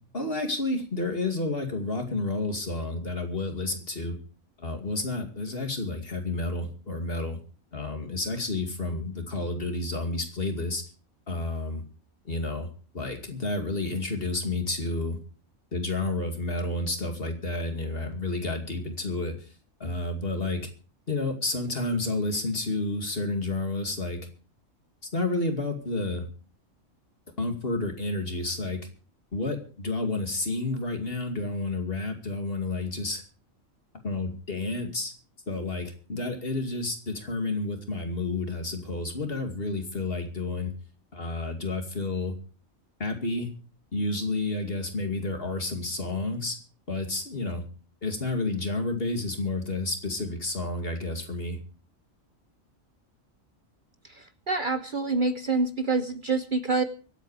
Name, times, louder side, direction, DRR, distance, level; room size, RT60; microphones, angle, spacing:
voice 1, 0.1-4.2 4.6-7.4 7.7-10.8 11.3-11.8 12.2-12.7 12.9-15.2 15.7-19.5 19.8-20.7 21.1-24.2 25.1-26.3 27.4-28.8 29.3-33.2 34.0-35.1 35.5-40.7 41.1-42.4 43.0-43.5 43.9-46.6 46.9-47.6 48.0-51.6, left 2 dB, 45° left, 5 dB, 2.6 m, -30 dB
voice 2, 54.5-56.8, right 3 dB, 45° right, 10 dB, 0.9 m, -26 dB
24.0 x 8.4 x 4.9 m, 0.39 s
omnidirectional pair, 1.4 m